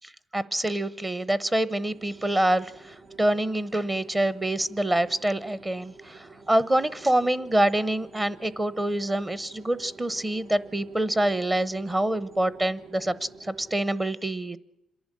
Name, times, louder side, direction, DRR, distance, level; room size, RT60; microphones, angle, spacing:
voice 1, 0.0-14.6, right 1 dB, 20° right, 17 dB, 0.9 m, -26 dB
sound 1, 1.8-13.9, right 4 dB, 80° right, 4.2 m, -50 dB
27.0 x 11.5 x 9.9 m, 0.87 s
cardioid pair, 115°, 0 cm